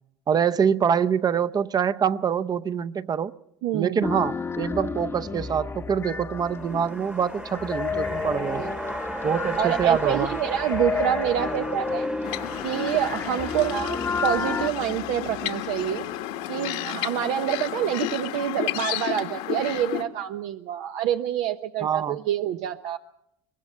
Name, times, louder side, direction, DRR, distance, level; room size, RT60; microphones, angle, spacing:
voice 1, 0.3-3.3 3.7-8.6 9.2-10.3 21.8-22.2, right 7 dB, 30° right, 13 dB, 0.7 m, -25 dB
voice 2, 3.6-4.1 8.5-8.7 9.6-12.1 12.6-16.1 16.5-23.0, right 10 dB, 75° right, 7 dB, 0.8 m, -27 dB
sound 1, 4.0-14.7, left 5 dB, 20° left, 0.9 m, -31 dB
sound 2, 6.4-16.8 17.1-17.2, right 1 dB, 10° right, 1.1 m, -37 dB
sound 3, 12.2-20.0, left 13 dB, 80° left, 1.5 m, -32 dB
23.0 x 20.5 x 5.5 m, 0.77 s
supercardioid pair, 110°, 13 cm